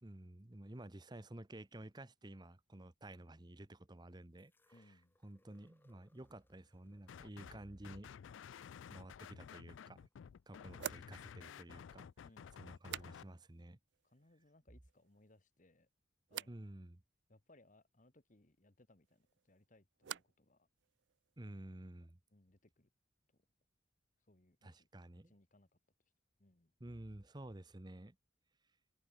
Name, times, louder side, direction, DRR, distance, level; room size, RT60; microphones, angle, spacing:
voice 1, 0.0-4.5 4.9-5.0 5.2-8.1 8.9-10.1 10.5-12.3 12.6-13.8 16.5-17.0 21.4-22.2 24.6-25.3 26.8-28.2, right 1 dB, 20° right, 0.9 m, -52 dB
sound 1, 4.4-10.4 11.3-11.4, left 1 dB, 10° left, 1.7 m, -77 dB
voice 2, 4.7-5.2 7.6-8.0 12.2-12.5 14.0-15.9 16.3-16.5 17.3-20.7 22.3-22.9 23.3-23.4 24.3-24.9 25.2-25.7 26.4-26.7, left 1 dB, 40° left, 1.5 m, -68 dB
sound 2, 7.1-7.6 7.8-13.2, left 7 dB, 75° left, 0.3 m, -53 dB
sound 3, 10.8-13.6 13.9-14.5 14.8-15.4 16.3-16.6 19.0-20.5 20.8-21.4, right 10 dB, 60° right, 0.4 m, -51 dB
head